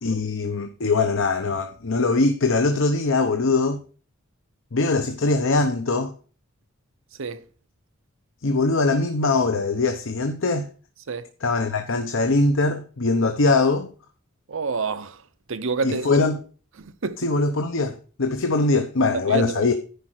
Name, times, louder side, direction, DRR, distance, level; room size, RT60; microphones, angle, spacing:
voice 1, 0.0-3.8 4.7-6.1 8.4-10.7 11.4-13.9 15.8-16.4 17.2-19.7, left 3 dB, 65° left, 0.9 m, -22 dB
voice 2, 14.5-15.2 15.5-16.2 16.8-17.2 19.3-19.7, right 4 dB, 65° right, 0.8 m, -28 dB
10.5 x 5.2 x 6.1 m
head